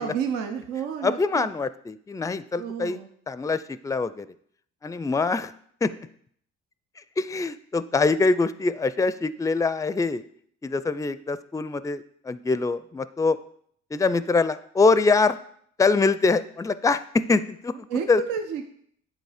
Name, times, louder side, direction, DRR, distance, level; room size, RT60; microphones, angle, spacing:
voice 1, 0.0-1.5 2.6-3.1 17.9-18.7, right 7 dB, 85° right, 5 dB, 0.7 m, -30 dB
voice 2, 1.0-3.0 3.3-4.3 4.8-5.5 5.8-5.9 7.2-10.2 10.6-13.4 13.9-15.4 15.8-18.2, left 4 dB, 10° left, 15 dB, 0.4 m, -24 dB
9.4 x 4.0 x 4.9 m, 0.64 s
supercardioid pair, 60°, 31 cm